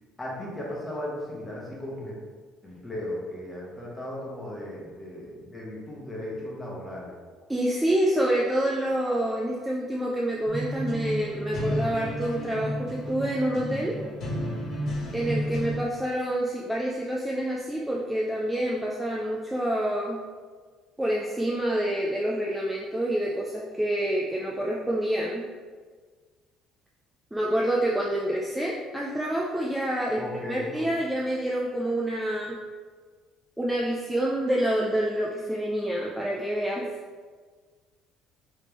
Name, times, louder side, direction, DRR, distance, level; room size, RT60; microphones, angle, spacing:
voice 1, 0.2-2.2 2.6-7.2 30.2-30.9, left 1 dB, 15° left, -4 dB, 1.0 m, -36 dB
voice 2, 7.5-14.0 15.1-20.2 21.0-25.4 27.3-30.2 30.5-32.6 33.6-36.9, right 1 dB, 5° right, -3 dB, 0.4 m, -27 dB
sound 1, 10.5-15.8, equal, 50° left, 1.4 m, -32 dB
3.4 x 3.2 x 3.0 m, 1.5 s
cardioid pair, 115°, 0 cm